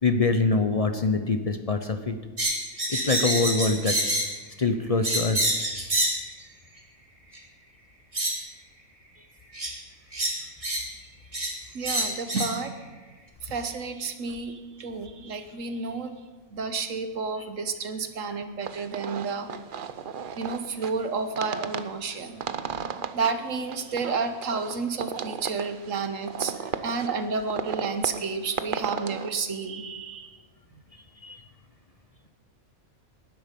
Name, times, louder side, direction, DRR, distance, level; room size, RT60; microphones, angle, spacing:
voice 1, 0.0-2.2 2.9-4.0 4.6-5.5 31.2-31.4, left 3 dB, 35° left, 7 dB, 0.7 m, -24 dB
sound 1, 2.4-4.4 5.0-6.2 7.3-7.4 8.1-8.4 9.5-9.7 10.1-10.9 11.3-11.6 11.8-12.5, right 1 dB, 25° right, 2.1 m, -27 dB
voice 2, 11.7-12.7 13.4-16.2 16.5-19.5 20.4-22.4 23.1-26.6 26.8-30.4, right 4 dB, 65° right, 9 dB, 1.4 m, -31 dB
sound 2, 18.6-29.3, right 7 dB, 50° right, 0.7 m, -35 dB
18.5 x 11.0 x 5.3 m, 1.3 s
omnidirectional pair, 1.5 m